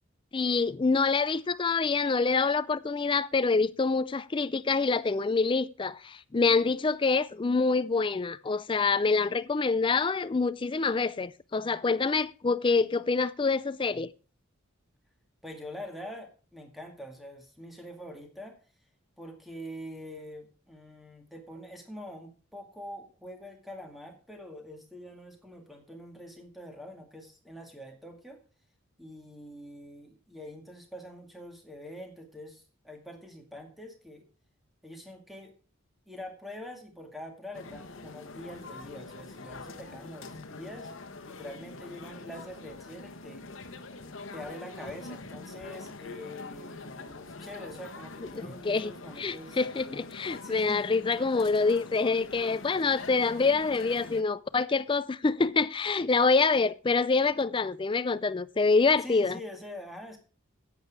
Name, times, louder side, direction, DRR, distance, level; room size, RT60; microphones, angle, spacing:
voice 1, 0.3-14.1 48.4-48.9 49.2-59.4, left 4 dB, 25° left, 0.4 m, -26 dB
voice 2, 15.4-18.6 19.2-28.4 29.0-34.3 34.8-35.5 36.1-40.9 41.2-43.7 44.3-49.6 50.4-50.9 59.0-60.2, left 1 dB, ahead, 2.1 m, -45 dB
sound 1, 37.5-54.2, left 3 dB, 65° left, 1.1 m, -44 dB
10.5 x 8.4 x 4.7 m
head